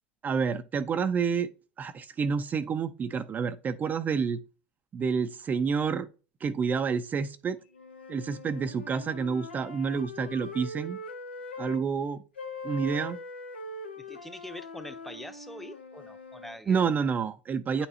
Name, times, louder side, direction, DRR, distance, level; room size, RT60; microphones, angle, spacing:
voice 1, 0.2-1.5 1.8-4.4 4.9-6.1 6.4-7.6 8.1-11.0 11.6-12.2 12.6-13.2 16.7-17.9, right 6 dB, 30° right, 0.5 m, -29 dB
sound 1, 7.7-11.8 12.4-16.6, left 2 dB, 90° left, 0.7 m, -42 dB
voice 2, 14.0-16.8 17.8-17.9, left 1 dB, 5° left, 0.7 m, -44 dB
9.3 x 4.3 x 2.8 m
hypercardioid pair, 80°, 6 cm